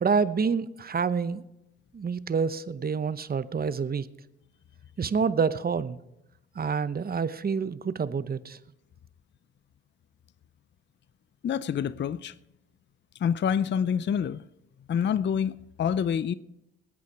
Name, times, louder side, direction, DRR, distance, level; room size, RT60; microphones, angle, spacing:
voice 1, 0.0-1.4 1.9-4.1 5.0-6.0 6.6-8.6, right 5 dB, 30° right, 0.8 m, -27 dB
voice 2, 11.4-12.3 13.2-14.4 14.9-15.5 15.8-16.3, left 8 dB, 40° left, 0.5 m, -26 dB
20.0 x 8.5 x 4.7 m
supercardioid pair, 65°, 29 cm